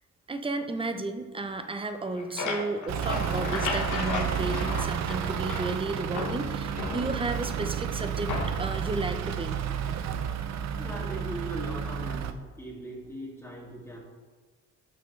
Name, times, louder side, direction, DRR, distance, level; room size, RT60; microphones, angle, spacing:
voice 1, 0.3-8.3 8.6-9.6, right 2 dB, 20° right, 8 dB, 0.6 m, -33 dB
sound 1, 1.9-5.8 6.1-7.5 8.3-8.8, left 4 dB, 80° left, 1.1 m, -34 dB
Truck / Idling, 2.9-12.3, right 8 dB, 60° right, 0.6 m, -31 dB
voice 2, 10.8-14.0, right 1 dB, 10° left, -2 dB, 1.9 m, -39 dB
6.8 x 5.9 x 3.2 m, 1.4 s
cardioid pair, 90°, 30 cm